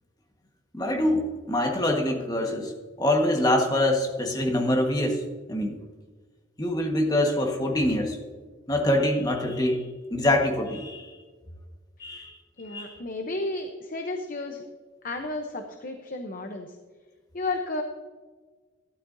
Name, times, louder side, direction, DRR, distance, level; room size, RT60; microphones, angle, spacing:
voice 1, 0.7-2.7 3.0-5.2 5.5-5.8 6.6-8.2 8.7-11.1 12.0-12.4 12.6-13.0, left 1 dB, 20° left, 2 dB, 1.5 m, -25 dB
voice 2, 12.6-14.6 15.0-16.8 17.3-17.8, left 2 dB, 45° left, 4 dB, 0.8 m, -33 dB
12.5 x 12.0 x 2.7 m, 1.4 s
head